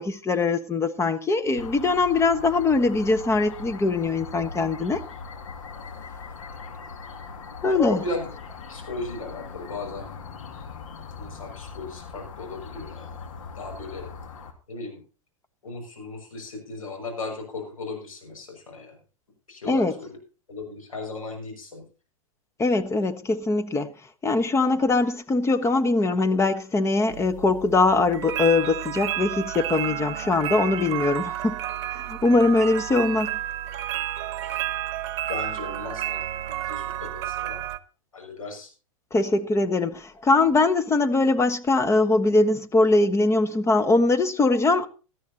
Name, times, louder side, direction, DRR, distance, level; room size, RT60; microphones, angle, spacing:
voice 1, 0.0-5.0 7.6-8.0 19.7-19.9 22.6-23.9 24.2-31.6 31.9-33.3 39.1-44.9, left 3 dB, 15° left, 1.2 m, -22 dB
sound 1, 1.6-14.5, left 5 dB, 70° left, 2.4 m, -40 dB
voice 2, 7.7-8.3 8.7-10.1 11.2-13.1 13.6-14.1 14.7-15.0 15.6-18.9 19.5-20.1 20.5-21.8 35.3-37.6 38.1-38.7, left 3 dB, 90° left, 6.4 m, -36 dB
sound 2, 27.1-37.8, right 12 dB, 55° right, 1.0 m, -31 dB
18.0 x 13.0 x 2.8 m
hypercardioid pair, 105°, 17 cm